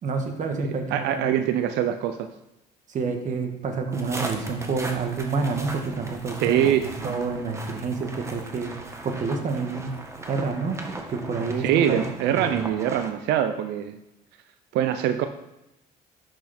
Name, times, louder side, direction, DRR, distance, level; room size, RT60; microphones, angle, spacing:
voice 1, 0.0-1.3 2.9-6.6 7.0-8.7 9.0-9.9 10.3-10.8 11.1-12.5, right 4 dB, 50° right, 5 dB, 1.6 m, -28 dB
voice 2, 0.9-2.3 6.4-7.2 11.6-14.0 14.7-15.3, right 10 dB, 85° right, 9 dB, 0.6 m, -24 dB
sound 1, 3.9-13.1, right 2 dB, 15° right, 1.4 m, -38 dB
11.5 x 6.2 x 4.3 m, 0.92 s
cardioid pair, 110°, 17 cm